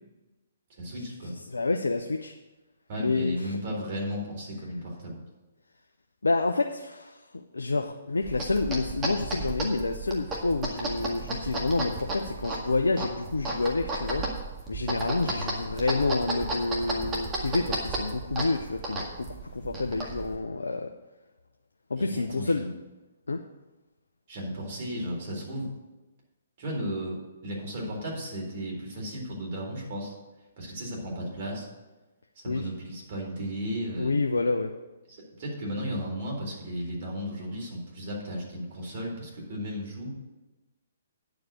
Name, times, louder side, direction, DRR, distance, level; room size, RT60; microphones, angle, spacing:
voice 1, 0.7-1.3 2.9-5.2 22.0-22.7 24.3-25.7 26.6-30.1 30.6-31.7 32.4-34.1 35.1-40.1, equal, 45° right, -2 dB, 4.0 m, -35 dB
voice 2, 1.5-2.3 3.0-3.6 6.2-14.3 14.7-20.9 21.9-22.7 23.3-23.4 32.5-32.7 34.0-34.7, left 3 dB, 75° left, 4 dB, 0.6 m, -28 dB
sound 1, 8.2-20.4, right 2 dB, 20° right, 1.9 m, -34 dB
10.0 x 4.9 x 8.1 m, 1.1 s
figure-of-eight pair, 125°, 0 cm